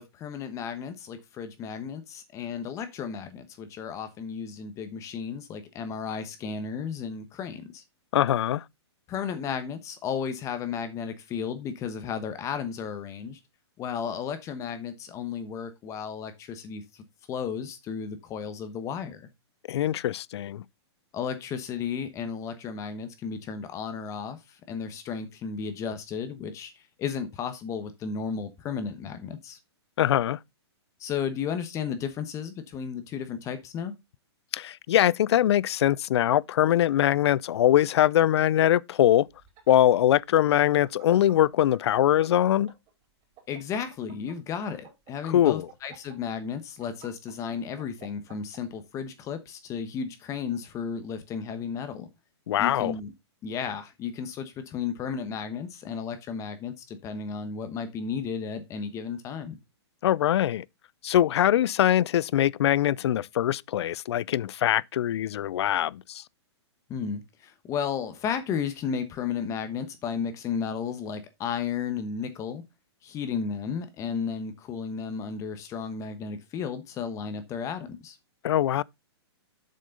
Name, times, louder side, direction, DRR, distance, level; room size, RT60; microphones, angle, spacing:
voice 1, 0.0-7.8 9.1-13.4 13.8-19.3 21.1-26.7 27.0-29.6 31.0-34.0 43.5-52.1 52.6-53.1 53.4-59.6 66.9-72.6 73.0-78.2, left 6 dB, 20° left, 1.1 m, -33 dB
voice 2, 8.1-8.6 19.7-20.6 30.0-30.4 34.5-39.3 39.7-42.7 45.3-45.7 52.5-52.9 60.0-60.6 61.0-66.2 78.4-78.8, left 12 dB, 65° left, 0.4 m, -22 dB
sound 1, 39.3-42.9 43.2-48.6, right 10 dB, 30° right, 4.0 m, -50 dB
7.6 x 6.5 x 3.8 m
hypercardioid pair, 150°, 15 cm